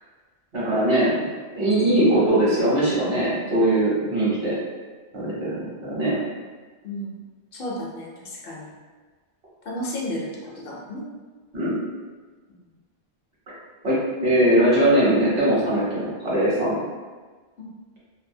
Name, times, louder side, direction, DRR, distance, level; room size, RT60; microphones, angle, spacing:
voice 1, 0.5-1.3 1.5-4.5 5.1-6.2 11.5-11.8 13.8-14.0 14.2-16.8, right 1 dB, 65° right, -7 dB, 1.1 m, -21 dB
voice 2, 6.8-7.2 7.5-8.7 9.7-11.0 12.5-12.6 17.6-17.7, left 1 dB, 65° left, -3 dB, 0.7 m, -33 dB
2.7 x 2.3 x 2.6 m, 1.4 s
omnidirectional pair, 1.1 m